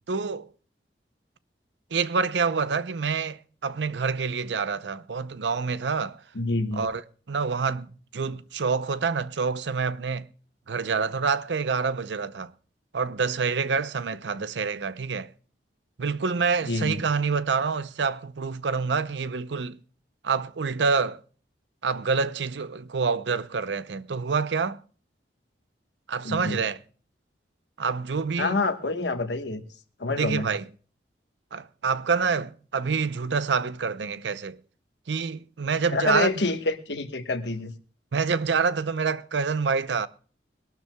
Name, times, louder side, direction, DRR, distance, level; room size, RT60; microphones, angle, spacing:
voice 1, 0.1-0.5 1.9-6.2 6.7-7.0 7.3-7.9 8.1-10.3 10.7-12.5 12.9-15.3 16.0-19.8 20.2-21.2 21.8-24.8 26.1-26.8 27.8-28.6 30.1-30.6 31.5-34.6 35.1-36.3 38.1-40.1, right 5 dB, 90° right, 0.6 m, -27 dB
voice 2, 6.3-6.9 16.6-17.0 26.2-26.6 28.4-29.6 30.0-30.5 35.9-37.7, left 3 dB, 80° left, 1.2 m, -27 dB
22.5 x 12.0 x 2.2 m
head